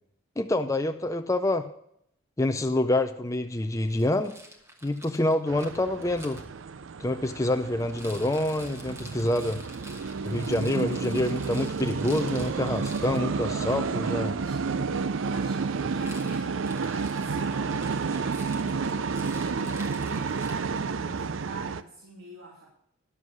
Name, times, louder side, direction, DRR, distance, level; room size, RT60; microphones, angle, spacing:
voice 1, 0.4-1.7 2.4-4.3 4.8-6.4 7.0-9.6 10.2-14.3, left 1 dB, 15° left, 7 dB, 0.4 m, -27 dB
Rattle, 3.9-6.4 7.8-13.2 15.9-20.9, right 1 dB, 15° right, 1.3 m, -48 dB
sound 1, 5.5-21.8, right 5 dB, 60° right, 0.5 m, -31 dB
voice 2, 14.0-22.7, right 2 dB, 90° right, -3 dB, 2.9 m, -45 dB
11.0 x 7.4 x 6.2 m, 0.73 s
head